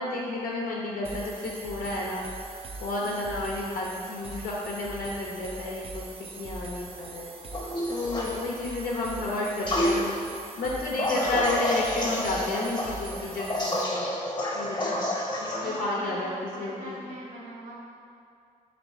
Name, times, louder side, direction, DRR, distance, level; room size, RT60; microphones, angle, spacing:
voice 1, 0.0-2.3 2.8-7.3 7.9-10.1 10.6-14.1 14.5-15.0 15.4-16.3 16.6-17.0, left 2 dB, 85° left, -4 dB, 0.4 m, -31 dB
sound 1, 1.0-13.8, right 3 dB, 40° right, 0.4 m, -42 dB
sound 2, 7.5-8.3 9.7-10.0 11.0-15.8, left 1 dB, 30° left, 0.8 m, -29 dB
voice 2, 8.2-8.6 10.9-11.3 14.6-15.1 15.6-17.7, equal, 70° right, -6 dB, 1.3 m, -43 dB
3.2 x 2.6 x 4.4 m, 2.4 s
cardioid pair, 70°, 14 cm